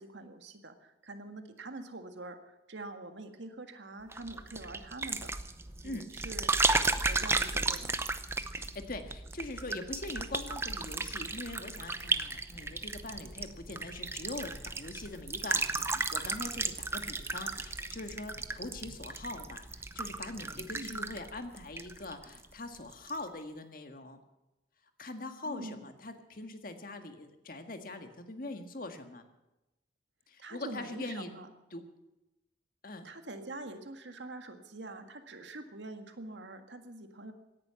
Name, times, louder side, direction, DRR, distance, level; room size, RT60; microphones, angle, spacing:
voice 1, 0.0-5.3 5.8-6.5 6.8-8.0 20.7-21.0 25.4-25.9 30.4-31.5 33.0-37.3, right 2 dB, 85° right, 7 dB, 1.8 m, -45 dB
sound 1, 4.1-22.4 22.7-23.2, right 3 dB, 15° right, 0.7 m, -34 dB
voice 2, 5.8-6.3 8.6-24.2 25.0-29.2 30.3-31.3 31.7-31.8 32.8-33.1, left 2 dB, 50° left, 6 dB, 1.7 m, -42 dB
17.0 x 11.0 x 7.7 m, 0.95 s
head